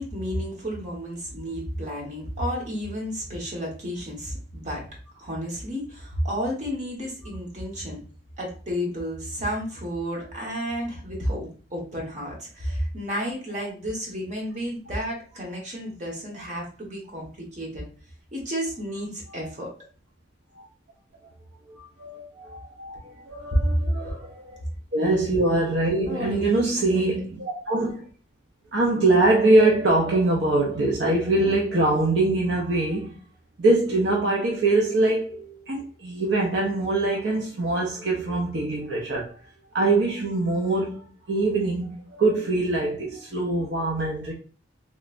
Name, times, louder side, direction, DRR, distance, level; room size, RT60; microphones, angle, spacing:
voice 1, 0.0-4.8 5.2-8.0 8.4-17.8 18.3-19.7 23.7-23.8 26.1-26.7 26.9-27.0, equal, 40° right, 1.2 m, -31 dB
voice 2, 21.7-24.6 24.9-28.1 28.7-33.2 33.6-39.4 39.7-44.3, right 2 dB, 70° right, 0.6 m, -23 dB
3.2 x 3.1 x 2.4 m
head